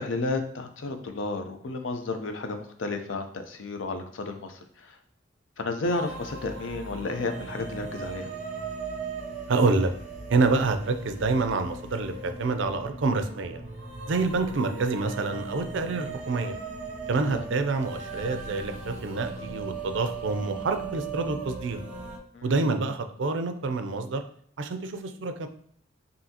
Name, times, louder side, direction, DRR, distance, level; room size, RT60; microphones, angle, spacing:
voice 1, 0.0-5.0 5.6-8.3 17.3-17.5 22.3-22.6, left 3 dB, 80° left, 6 dB, 0.6 m, -32 dB
sound 1, 5.8-22.2, right 4 dB, 40° right, 0.8 m, -38 dB
voice 2, 9.5-9.9 10.3-13.6 14.1-16.6 17.1-21.8 22.4-24.2 24.6-25.5, right 3 dB, 70° right, 9 dB, 0.5 m, -27 dB
5.6 x 2.8 x 2.8 m, 0.63 s
head